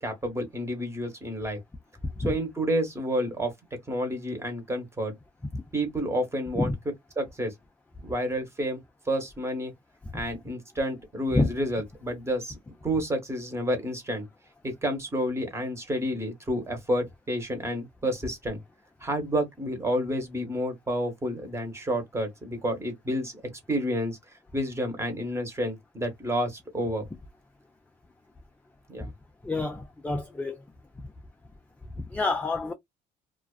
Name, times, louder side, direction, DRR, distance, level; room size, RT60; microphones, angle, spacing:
voice 1, 0.0-1.6 2.2-3.5 3.9-5.1 5.7-6.7 7.2-7.5 8.0-9.7 10.1-12.6 12.8-14.3 14.6-18.6 19.0-23.4 23.7-27.1 28.9-29.1, equal, 15° right, 1.0 m, -30 dB
voice 2, 29.4-30.6 32.1-32.7, left 2 dB, 10° left, 0.3 m, -28 dB
2.3 x 2.3 x 2.3 m
cardioid pair, 110°, 17 cm